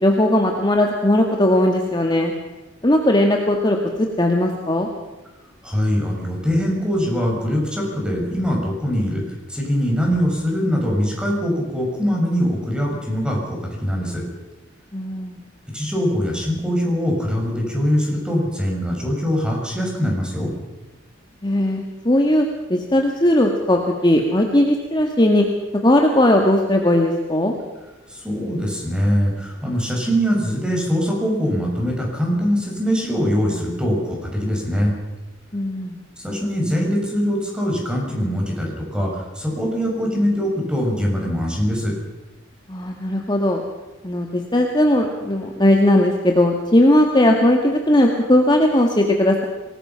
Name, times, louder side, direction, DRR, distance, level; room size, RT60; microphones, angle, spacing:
voice 1, 0.0-2.3 2.8-4.9 14.9-15.4 21.4-25.5 25.8-27.5 35.5-36.0 42.7-43.6 44.0-49.4, left 1 dB, 25° left, 2 dB, 1.9 m, -18 dB
voice 2, 5.6-9.2 9.5-14.2 15.7-20.5 28.1-34.9 36.2-41.9, equal, 5° right, -1 dB, 6.9 m, -22 dB
26.0 x 20.0 x 5.9 m, 1.1 s
head